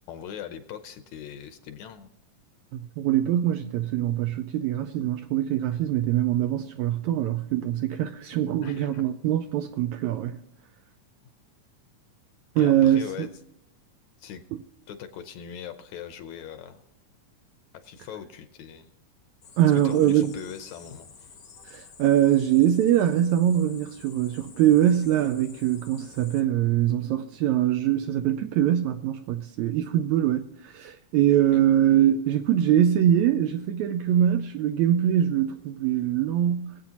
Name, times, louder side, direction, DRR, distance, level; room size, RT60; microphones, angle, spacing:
voice 1, 0.1-2.1 8.6-9.0 12.6-13.3 14.2-14.4 14.9-16.8 17.7-19.0 19.7-21.3 31.5-31.6, left 9 dB, 75° left, 1.9 m, -40 dB
voice 2, 2.7-10.4 12.6-13.3 19.6-20.3 21.6-36.8, right 11 dB, 80° right, 1.7 m, -23 dB
sound 1, 19.4-26.4, left 5 dB, 55° left, 1.0 m, -50 dB
21.5 x 8.3 x 2.9 m
omnidirectional pair, 3.7 m